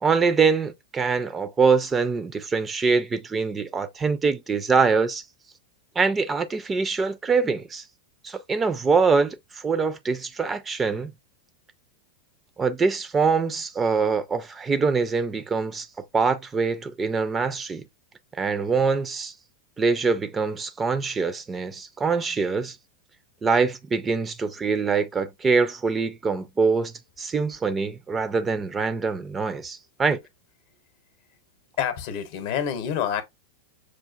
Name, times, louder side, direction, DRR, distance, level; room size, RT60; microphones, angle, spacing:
voice 1, 0.0-5.2 6.0-7.8 8.2-11.1 12.6-17.9 18.3-19.3 19.8-22.8 23.4-30.2, right 4 dB, 20° right, 0.4 m, -24 dB
voice 2, 31.8-33.2, left 9 dB, 55° left, 0.8 m, -27 dB
6.2 x 2.4 x 2.3 m
figure-of-eight pair, 90°, 0 cm